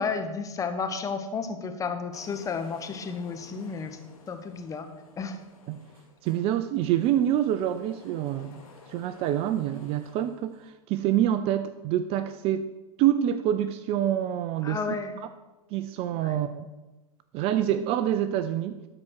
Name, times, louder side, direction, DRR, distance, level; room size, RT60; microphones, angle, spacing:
voice 1, 0.0-4.0 4.3-4.9 5.2-5.4 14.6-15.2 16.1-16.4, left 5 dB, 15° left, 7 dB, 0.9 m, -32 dB
sound 1, 2.1-10.7, left 4 dB, 70° left, 2.5 m, -53 dB
voice 2, 6.2-8.6 8.9-12.6 13.0-14.8 15.2-15.3 15.7-16.7 17.3-18.8, right 11 dB, 30° right, 12 dB, 0.4 m, -26 dB
12.5 x 4.3 x 6.2 m, 1.1 s
hypercardioid pair, 115°, 19 cm